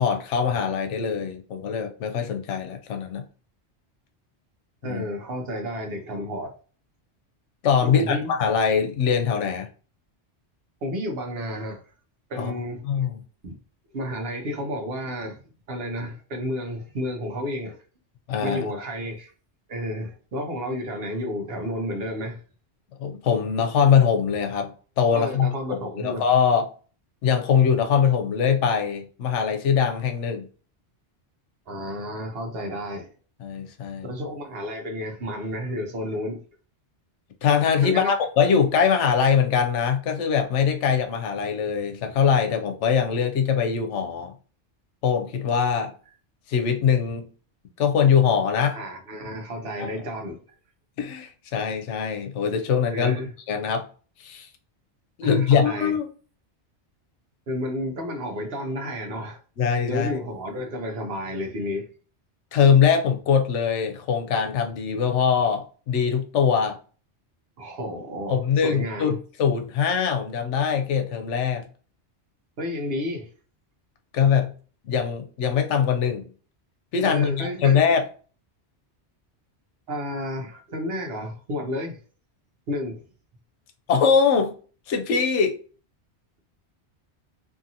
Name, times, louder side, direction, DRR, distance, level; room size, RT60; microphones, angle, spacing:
voice 1, 0.0-3.2 4.8-5.0 7.6-9.7 12.4-12.5 12.8-13.2 18.3-18.7 23.0-26.6 27.2-30.5 33.4-34.1 37.4-44.3 45.0-45.9 46.5-47.3 47.8-48.8 49.8-49.9 51.0-53.2 53.5-53.9 54.2-54.5 55.2-56.1 59.6-60.2 62.5-66.8 68.3-71.6 74.1-74.5 74.9-76.3 76.9-78.0 83.9-84.5 84.9-85.6, left 7 dB, 85° left, 0.9 m, -22 dB
voice 2, 4.8-6.5 7.8-8.3 10.8-11.8 12.3-12.8 13.4-13.6 13.9-15.4 15.7-17.8 18.4-19.3 19.7-22.4 25.1-26.3 31.7-33.1 34.0-36.4 37.8-38.1 48.7-50.4 52.9-53.3 55.2-55.9 57.5-59.4 59.9-61.9 67.6-69.1 72.6-73.3 77.0-77.8 79.9-82.0 82.7-83.0, equal, 60° right, 0.9 m, -31 dB
2.7 x 2.6 x 2.7 m
omnidirectional pair, 1.2 m